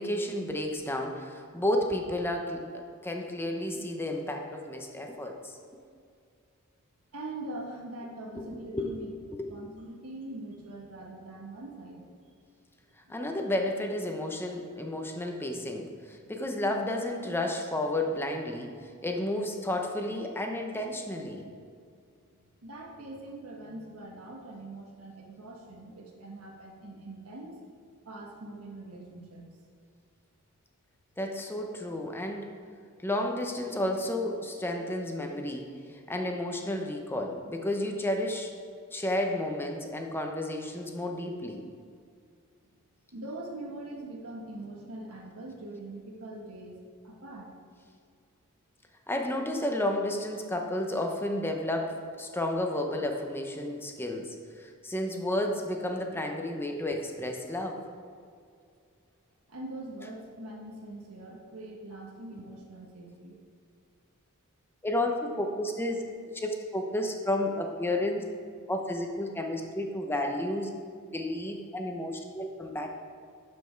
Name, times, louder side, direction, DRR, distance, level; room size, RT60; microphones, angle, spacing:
voice 1, 0.0-2.6 3.0-5.5 8.4-8.5 8.7-8.9 9.3-9.5 13.1-21.5 31.2-32.5 33.0-38.5 38.9-41.6 49.1-57.8 64.8-66.0 66.3-68.2 68.7-70.7 71.1-72.9, left 1 dB, 10° left, 3 dB, 0.8 m, -32 dB
voice 2, 7.1-9.1 9.5-12.1 13.1-13.2 16.2-16.3 21.4-21.5 22.6-27.6 28.0-29.5 32.2-32.4 43.1-46.8 47.0-47.5 59.5-63.4, right 2 dB, 85° right, -1 dB, 1.4 m, -43 dB
12.0 x 5.3 x 4.5 m, 2.2 s
head